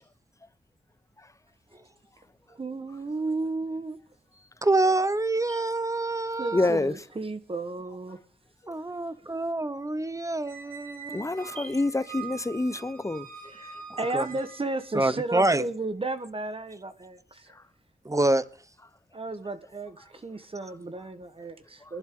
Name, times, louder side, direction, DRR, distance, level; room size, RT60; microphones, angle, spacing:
voice 1, 2.5-4.0 5.5-5.6 6.4-8.2 8.9-9.3 11.5-11.8 13.4-17.5 19.1-22.0, right 2 dB, 40° right, 1.4 m, -34 dB
voice 2, 4.6-6.7 8.7-11.2 14.1-14.3 14.9-15.6 18.0-18.5, right 2 dB, 25° right, 1.0 m, -26 dB
voice 3, 6.5-6.9 11.1-13.3, left 2 dB, 20° left, 0.9 m, -27 dB
Squeak, 10.5-14.9, right 5 dB, 85° right, 2.4 m, -44 dB
20.0 x 11.5 x 3.8 m
cardioid pair, 50°, 14 cm